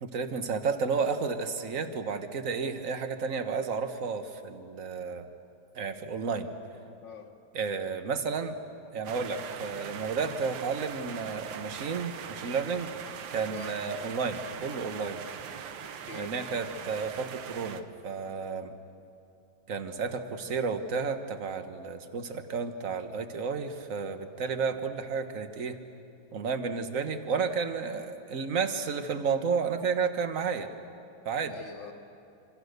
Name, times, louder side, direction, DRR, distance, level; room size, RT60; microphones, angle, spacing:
voice 1, 0.0-5.3 5.7-6.5 7.5-8.6 8.9-12.9 13.3-15.2 16.1-18.7 19.7-25.8 26.3-30.7 31.2-31.6, right 5 dB, 45° right, 7 dB, 1.6 m, -32 dB
voice 2, 7.0-7.4 13.5-13.8 15.8-16.3 31.5-31.9, left 5 dB, 85° left, 0 dB, 2.4 m, -45 dB
sound 1, 9.0-17.8, right 8 dB, 90° right, 1.7 m, -41 dB
27.0 x 26.5 x 6.7 m, 2.6 s
omnidirectional pair, 2.1 m